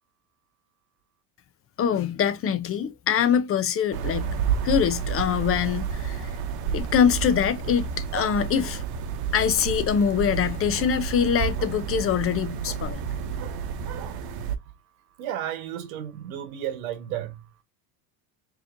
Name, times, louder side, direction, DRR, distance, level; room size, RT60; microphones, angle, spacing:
voice 1, 1.8-4.3 4.6-6.4 6.7-8.8 9.3-13.0, left 8 dB, 35° left, 0.6 m, -24 dB
sound 1, 3.9-14.5, right 6 dB, 60° right, 1.0 m, -30 dB
voice 2, 15.2-17.5, right 11 dB, 85° right, 1.4 m, -33 dB
4.7 x 3.0 x 2.5 m
supercardioid pair, 120°, 41 cm